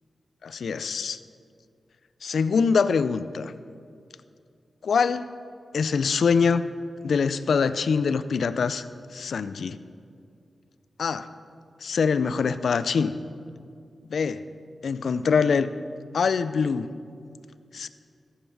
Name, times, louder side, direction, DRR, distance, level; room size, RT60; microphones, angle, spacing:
voice 1, 0.4-1.2 2.2-3.5 4.8-5.3 5.7-6.7 7.0-8.9 9.1-9.8 11.0-11.3 11.8-13.2 14.1-14.4 14.8-15.7 16.1-16.9 17.7-17.9, left 5 dB, 80° left, 14 dB, 0.4 m, -24 dB
14.5 x 7.2 x 4.7 m, 2.3 s
wide cardioid pair, 120°, 0 cm